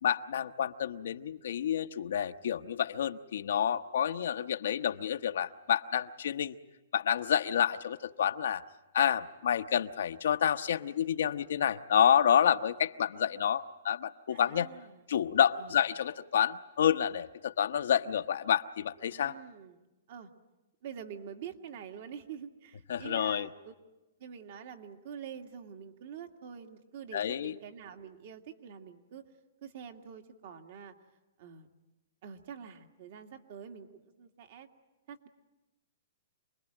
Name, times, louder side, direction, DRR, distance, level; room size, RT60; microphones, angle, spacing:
voice 1, 0.0-6.6 6.9-8.6 8.9-14.7 15.1-19.3 22.9-23.5 27.1-27.5, left 9 dB, 70° left, 9 dB, 0.9 m, -29 dB
voice 2, 13.1-13.5 14.3-15.0 15.6-15.8 19.0-20.3 20.8-23.7 24.2-29.2 29.6-30.9 31.4-31.7 32.2-34.7 35.1-35.3, right 7 dB, 50° right, 5 dB, 2.1 m, -46 dB
27.5 x 21.0 x 8.9 m, 1.0 s
hypercardioid pair, 160°, 0 cm